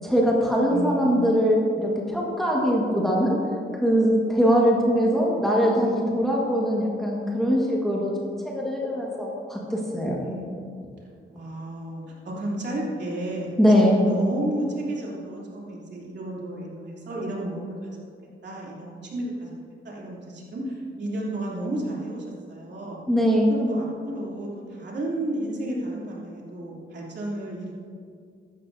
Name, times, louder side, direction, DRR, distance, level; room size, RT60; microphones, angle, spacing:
voice 1, 0.0-3.4 3.8-10.2 13.6-14.0 23.1-23.5, equal, ahead, -4 dB, 1.5 m, -22 dB
voice 2, 0.7-1.2 10.2-10.5 11.3-17.9 18.4-19.6 19.8-23.0 23.5-27.7, right 1 dB, 55° right, -5 dB, 2.9 m, -32 dB
15.5 x 12.5 x 2.7 m, 2.3 s
wide cardioid pair, 175°, 21 cm